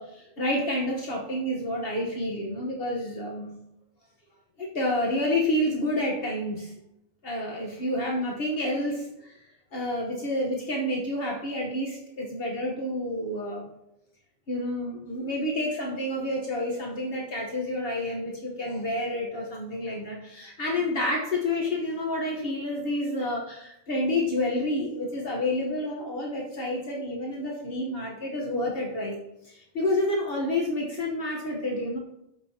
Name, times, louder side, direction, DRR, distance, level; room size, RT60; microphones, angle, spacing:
voice 1, 0.0-3.6 4.6-6.8 7.2-9.4 9.7-13.7 14.5-29.2 29.4-32.0, left 1 dB, 65° left, -2 dB, 1.3 m, -29 dB
12.5 x 5.4 x 2.8 m, 0.82 s
omnidirectional pair, 1.0 m